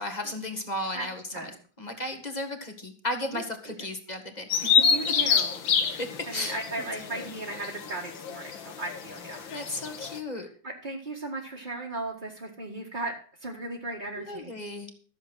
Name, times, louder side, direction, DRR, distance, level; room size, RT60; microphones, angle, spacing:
voice 1, 0.0-1.5 1.8-4.5 6.0-6.6 7.2-7.3 9.5-10.5 14.2-15.0, left 1 dB, 25° left, 6 dB, 1.6 m, -34 dB
Bird vocalization bird call bird song, 4.5-10.2, left 7 dB, 80° left, 1.9 m, -27 dB
voice 2, 4.7-5.6 6.3-9.5 10.6-13.1 13.4-14.5, right 2 dB, 25° right, -3 dB, 1.7 m, -36 dB
14.0 x 7.2 x 6.2 m, 0.43 s
omnidirectional pair, 2.1 m